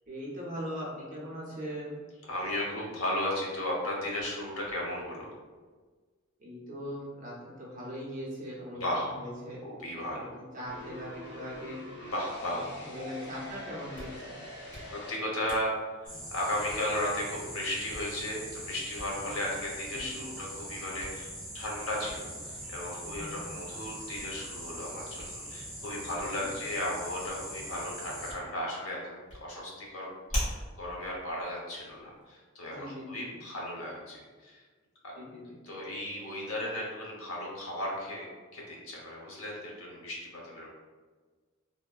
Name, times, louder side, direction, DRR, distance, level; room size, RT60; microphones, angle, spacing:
voice 1, 0.1-2.0 6.4-9.6 10.1-10.3 10.5-11.8 12.4-14.4 19.1-19.2 19.9-20.3 23.0-23.4 26.4-26.5 32.6-33.4 35.2-35.6, equal, 40° right, -6 dB, 0.7 m, -40 dB
voice 2, 2.3-5.3 8.7-9.1 9.6-10.3 12.0-12.7 14.9-15.7 16.0-29.1 29.4-34.6 35.0-35.1 35.6-38.3 38.5-40.7, left 1 dB, 85° left, -3 dB, 0.8 m, -35 dB
sound 1, 10.7-15.2, left 1 dB, 55° left, 0.7 m, -44 dB
Hands, 13.7-32.2, equal, 35° left, 1.3 m, -45 dB
sound 2, 16.0-28.3, equal, 5° left, 0.9 m, -42 dB
3.5 x 2.1 x 2.3 m, 1.4 s
head